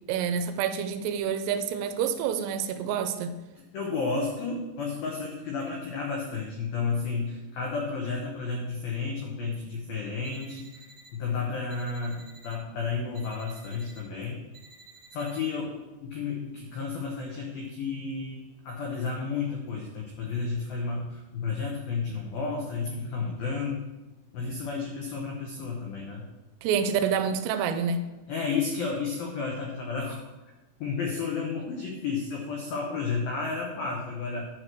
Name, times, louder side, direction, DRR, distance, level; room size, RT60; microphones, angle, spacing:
voice 1, 0.1-3.4 26.6-28.0, right 7 dB, 80° right, 9 dB, 3.1 m, -28 dB
voice 2, 3.7-10.8 11.1-14.4 15.1-15.7 16.0-18.4 18.6-23.8 24.3-26.2 28.3-30.2 30.8-34.4, left 4 dB, 85° left, -1 dB, 2.0 m, -32 dB
sound 1, 10.2-11.1 11.7-12.6 13.1-14.0 14.5-15.4, right 3 dB, 50° right, 1.4 m, -52 dB
10.5 x 4.6 x 6.6 m, 1.1 s
omnidirectional pair, 6.0 m